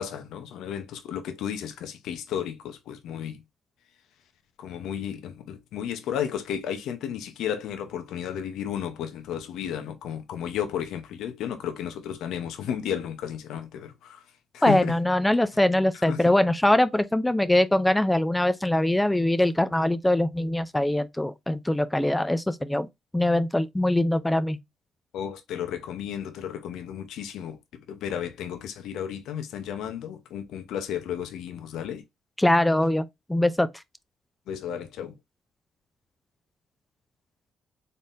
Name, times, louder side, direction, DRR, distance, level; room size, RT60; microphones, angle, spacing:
voice 1, 0.0-3.4 4.6-14.2 14.5-15.0 16.0-16.2 25.1-27.6 27.9-32.0 34.5-35.1, left 9 dB, 85° left, 0.8 m, -33 dB
voice 2, 14.6-22.9 23.1-24.6 32.4-33.7, left 1 dB, 10° left, 0.4 m, -22 dB
4.0 x 3.7 x 2.5 m
cardioid pair, 90°, 0 cm